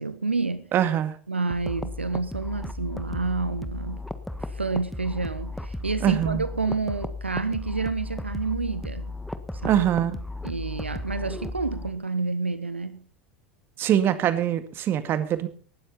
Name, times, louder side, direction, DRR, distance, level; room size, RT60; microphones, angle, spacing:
voice 1, 0.0-0.7 1.3-4.0 4.5-9.1 9.6-9.8 10.4-13.0, right 3 dB, 85° right, 1.1 m, -29 dB
voice 2, 0.7-1.1 6.0-6.4 9.7-10.2 13.8-15.5, right 10 dB, 40° right, 2.0 m, -23 dB
sound 1, 1.5-11.9, left 2 dB, ahead, 1.6 m, -35 dB
18.5 x 13.0 x 4.2 m
figure-of-eight pair, 80°, 6 cm